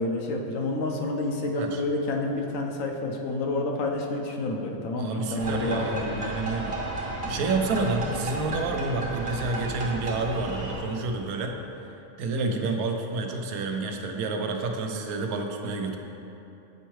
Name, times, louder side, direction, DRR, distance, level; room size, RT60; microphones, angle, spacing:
voice 1, 0.0-6.3 12.4-12.6, left 2 dB, 70° left, 1 dB, 0.9 m, -29 dB
voice 2, 1.4-1.8 5.0-6.8 7.2-11.5 12.2-16.0, right 3 dB, 85° right, 3 dB, 1.0 m, -29 dB
sound 1, 5.4-10.8, right 2 dB, 50° right, 0.9 m, -33 dB
8.0 x 4.4 x 3.1 m, 2.9 s
omnidirectional pair, 1.5 m